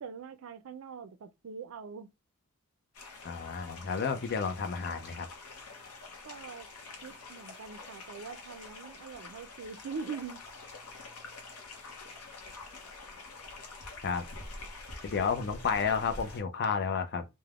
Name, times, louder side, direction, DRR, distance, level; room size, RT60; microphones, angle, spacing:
voice 1, 0.0-2.1 6.2-6.7 7.0-10.4 15.1-16.1, right 5 dB, 70° right, 0.4 m, -43 dB
sound 1, 2.9-16.4, left 3 dB, 85° left, 0.7 m, -47 dB
voice 2, 3.2-5.3 14.0-14.2 15.0-17.2, left 5 dB, 50° left, 0.4 m, -31 dB
3.3 x 2.1 x 2.3 m
head